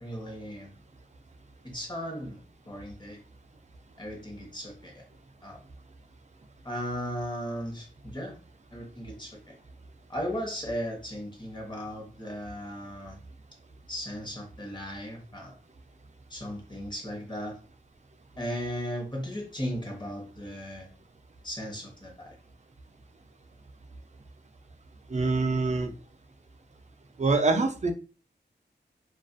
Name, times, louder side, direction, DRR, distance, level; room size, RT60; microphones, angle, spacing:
voice 1, 0.0-0.7 1.6-2.4 2.6-3.2 4.0-5.0 5.4-5.6 6.6-8.3 8.7-9.5 10.1-13.2 13.9-15.5 16.3-17.6 18.4-20.9 21.4-22.4, equal, 25° left, 0 dB, 1.0 m, -36 dB
voice 2, 25.1-25.9 27.2-27.9, right 3 dB, 40° right, 6 dB, 0.5 m, -25 dB
2.4 x 2.3 x 2.5 m, 0.35 s
wide cardioid pair, 85°, 18 cm